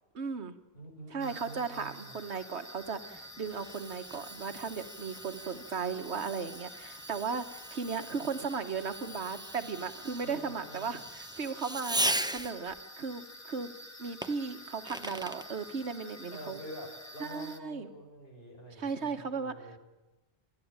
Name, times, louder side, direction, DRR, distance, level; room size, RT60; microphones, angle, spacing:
voice 1, 0.1-0.6 1.1-13.7 14.0-16.6 17.2-17.9 18.8-19.8, right 5 dB, 80° right, 9 dB, 1.5 m, -36 dB
voice 2, 0.7-2.2 10.2-11.0 16.3-19.8, right 1 dB, 55° left, 1 dB, 6.4 m, -47 dB
sound 1, 1.2-17.6, left 1 dB, 15° left, 1.3 m, -49 dB
Fireworks, 2.9-12.8 14.2-15.5, right 1 dB, 5° right, 0.5 m, -39 dB
29.5 x 11.5 x 8.8 m, 1.1 s
omnidirectional pair, 1.1 m